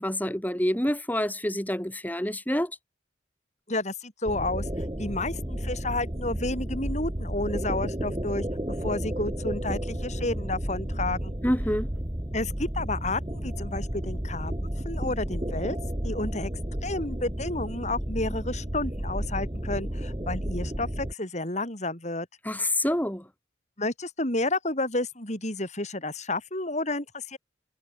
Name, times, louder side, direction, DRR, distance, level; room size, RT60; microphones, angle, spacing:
voice 1, 0.0-2.7 11.4-11.9 22.4-23.2, left 1 dB, 10° left, 4.1 m, -27 dB
voice 2, 3.7-8.4 8.8-11.3 12.3-14.5 14.8-15.8 16.0-16.5 16.8-22.3 23.8-27.4, left 2 dB, 40° left, 5.9 m, -31 dB
sound 1, 4.3-21.1, equal, 25° right, 2.0 m, -32 dB
head